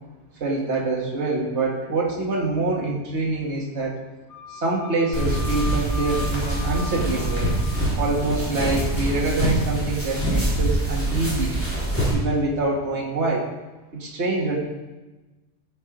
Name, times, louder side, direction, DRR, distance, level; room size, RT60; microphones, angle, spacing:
voice 1, 0.4-4.0 4.5-7.5 7.9-11.6 12.1-13.4 13.9-14.6, right 2 dB, 50° right, -3 dB, 2.0 m, -25 dB
Wind instrument woodwind instrument, 4.3-7.9, left 4 dB, 90° left, 1.8 m, -38 dB
springer i djupsnö, 5.1-12.1, right 1 dB, 10° left, 3.6 m, -24 dB
16.0 x 5.6 x 5.1 m, 1.1 s
omnidirectional pair, 1.5 m